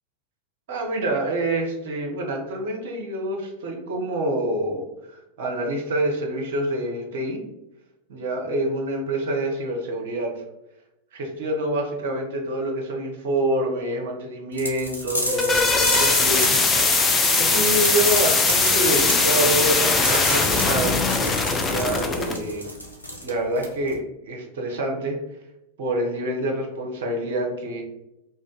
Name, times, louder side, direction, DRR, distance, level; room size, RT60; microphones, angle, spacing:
voice 1, 0.7-7.4 8.1-10.4 11.1-22.7 23.2-25.2 25.8-27.8, right 1 dB, 55° right, 1 dB, 0.7 m, -27 dB
sound 1, 14.6-24.0, equal, 85° left, 0.7 m, -30 dB
sound 2, 15.1-22.4, left 4 dB, 20° left, 0.4 m, -21 dB
2.6 x 2.4 x 3.7 m, 0.89 s
figure-of-eight pair, 90°, 0 cm